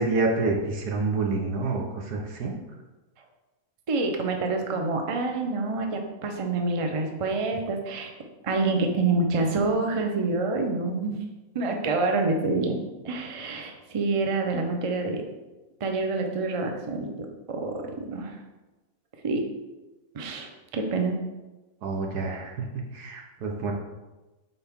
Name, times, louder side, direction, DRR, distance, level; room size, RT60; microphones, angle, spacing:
voice 1, 0.0-2.5 21.8-23.7, right 3 dB, 85° right, 1 dB, 1.6 m, -28 dB
voice 2, 3.9-8.1 8.4-11.2 11.5-12.8 13.0-15.2 15.8-18.4 19.2-19.4 20.1-21.1, right 3 dB, 35° right, 3 dB, 0.5 m, -27 dB
8.1 x 4.2 x 3.6 m, 1.1 s
omnidirectional pair, 1.6 m